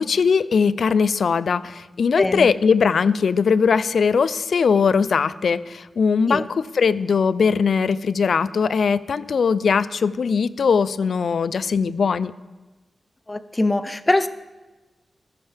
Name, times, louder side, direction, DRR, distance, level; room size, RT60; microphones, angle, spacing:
voice 1, 0.0-12.3, left 5 dB, 75° left, 17 dB, 0.4 m, -20 dB
voice 2, 2.2-2.5 6.3-6.4 13.3-14.3, left 2 dB, 20° left, 13 dB, 0.5 m, -22 dB
14.5 x 13.0 x 3.4 m, 1.2 s
wide cardioid pair, 130°, 0 cm